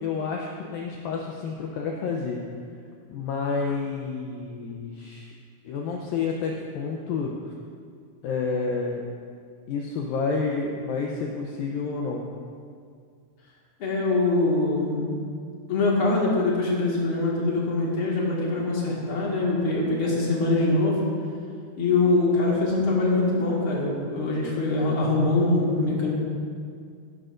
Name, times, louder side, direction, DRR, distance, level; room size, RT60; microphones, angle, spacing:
voice 1, 0.0-2.4 3.1-5.3 5.7-7.4 8.2-9.0 9.7-12.2, left 4 dB, 85° left, 0 dB, 2.0 m, -29 dB
voice 2, 13.8-15.1 15.7-21.0 21.8-26.1, left 2 dB, 45° left, -5 dB, 1.8 m, -23 dB
15.5 x 11.5 x 2.6 m, 2.2 s
omnidirectional pair, 5.0 m